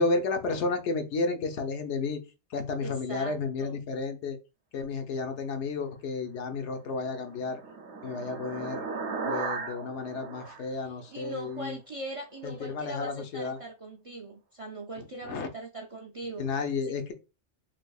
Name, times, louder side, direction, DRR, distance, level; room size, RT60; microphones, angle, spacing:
voice 1, 0.0-2.2 2.5-4.4 4.7-7.6 8.0-8.9 9.2-11.8 12.4-13.6 15.0-15.5 16.4-17.1, left 3 dB, 80° left, 6 dB, 1.0 m, -32 dB
voice 2, 2.8-3.3 3.6-3.8 10.8-16.4, right 1 dB, 50° right, 1 dB, 0.4 m, -41 dB
sound 1, 6.8-11.6, right 4 dB, 75° right, 0.8 m, -37 dB
3.3 x 3.3 x 2.3 m, 0.29 s
omnidirectional pair, 1.2 m